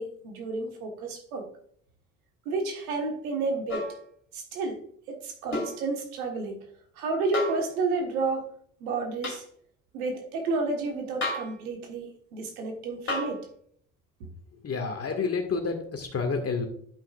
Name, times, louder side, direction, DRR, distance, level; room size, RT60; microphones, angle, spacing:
voice 1, 0.0-1.5 2.4-3.8 4.3-4.8 5.1-6.6 6.9-8.5 8.8-9.4 9.9-13.4 14.2-14.3, right 3 dB, 75° right, 3 dB, 1.6 m, -31 dB
sound 1, 3.7-4.0 5.5-5.8 7.3-7.7 9.2-9.4 11.2-11.6 13.1-13.4 15.1-15.2, left 2 dB, 90° left, 2.2 m, -31 dB
voice 2, 14.5-16.7, left 4 dB, 35° left, 4 dB, 1.9 m, -29 dB
12.5 x 5.7 x 2.5 m, 0.63 s
figure-of-eight pair, 55°, 43 cm